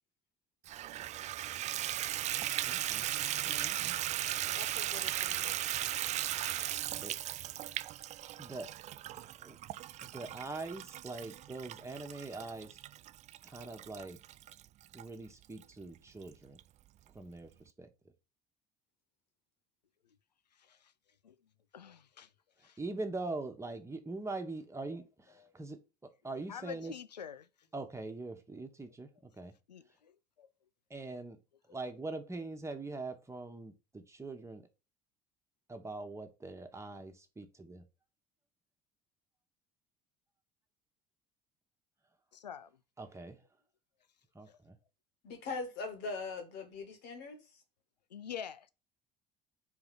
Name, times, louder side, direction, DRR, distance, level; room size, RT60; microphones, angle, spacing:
Water tap faucet / Bathtub (filling or washing), 0.7-15.0 15.6-15.7 16.2-16.3 16.6-16.7, right 13 dB, 35° right, 0.4 m, -37 dB
voice 1, 2.6-3.1 3.4-4.0 7.0-7.2 8.4-8.7 9.1-9.6 10.0-12.8 13.4-14.2 14.9-16.6 17.1-17.9 22.8-26.9 27.7-29.5 30.9-31.4 31.7-34.6 35.7-37.8 43.0-43.4 44.3-44.8, right 3 dB, 15° right, 1.6 m, -43 dB
voice 2, 4.5-5.6 45.2-47.4, left 4 dB, 55° left, 2.2 m, -42 dB
voice 3, 20.6-20.9 21.2-21.4 21.7-22.3 22.6-22.8 25.4-25.5 26.5-27.5 29.7-30.1 30.4-30.5 42.3-42.7 44.5-44.6 48.1-48.7, left 8 dB, 85° left, 0.5 m, -46 dB
5.2 x 4.8 x 5.9 m
figure-of-eight pair, 60°, 21 cm